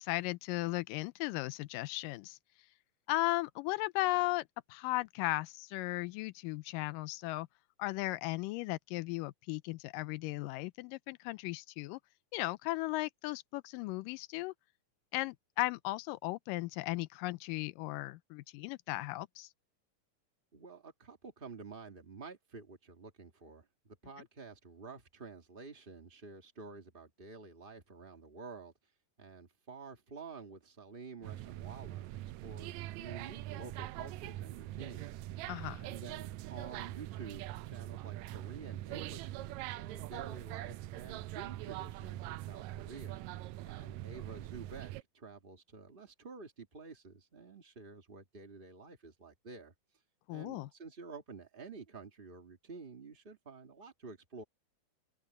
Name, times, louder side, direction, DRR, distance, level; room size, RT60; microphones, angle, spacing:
voice 1, 0.0-2.4 3.1-7.5 7.8-12.0 12.3-14.5 15.1-19.5 35.5-35.8 50.3-50.7, left 19 dB, 90° left, 2.3 m, -36 dB
voice 2, 20.5-28.7 29.2-35.5 35.8-43.2 43.6-49.7 50.3-54.4, right 4 dB, 35° right, 0.9 m, -50 dB
sound 1, 31.2-45.0, right 16 dB, 90° right, 1.6 m, -43 dB
omnidirectional pair, 3.8 m